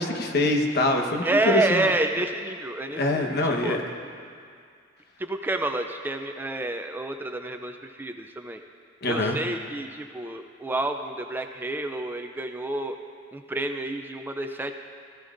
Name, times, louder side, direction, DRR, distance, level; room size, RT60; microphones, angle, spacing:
voice 1, 0.0-1.9 3.0-3.8 9.0-9.4, left 2 dB, 55° left, 3 dB, 1.2 m, -24 dB
voice 2, 1.2-3.8 5.2-8.6 9.1-13.0 13.3-14.7, right 2 dB, 10° right, 6 dB, 0.4 m, -29 dB
16.5 x 15.0 x 2.6 m, 2.2 s
head